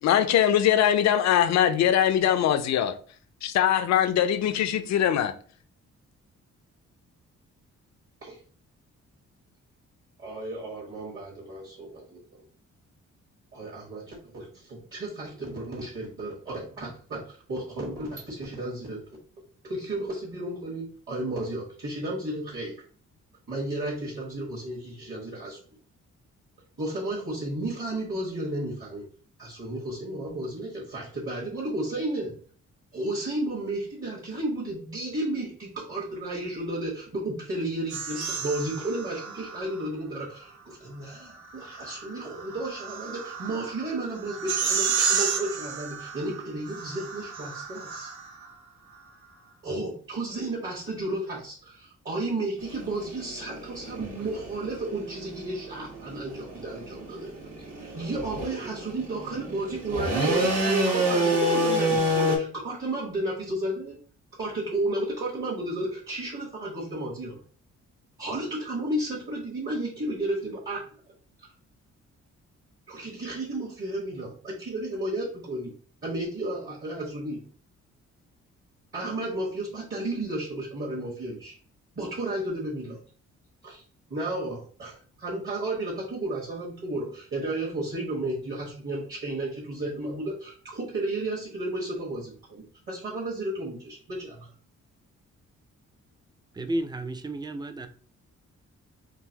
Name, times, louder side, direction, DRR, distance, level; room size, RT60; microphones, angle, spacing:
voice 1, 0.0-2.9 3.4-5.3, left 10 dB, 70° left, 0.4 m, -22 dB
voice 2, 10.2-12.4 13.5-19.0 19.6-22.8 23.5-25.6 26.8-29.0 29.4-32.4 32.9-48.1 49.6-57.3 57.8-64.0 64.3-67.4 68.2-70.9 71.4-71.5 72.9-75.7 76.0-77.4 78.9-81.5 81.9-83.0 83.6-83.8 84.1-94.5, right 1 dB, 45° right, 1.3 m, -33 dB
sound 1, 37.9-39.9 41.3-48.5, right 6 dB, 80° right, 0.7 m, -32 dB
sound 2, 52.6-62.4, equal, 60° right, 1.4 m, -29 dB
voice 3, 96.6-97.9, right 1 dB, 15° right, 0.3 m, -32 dB
3.8 x 2.6 x 2.8 m
cardioid pair, 100°, 29 cm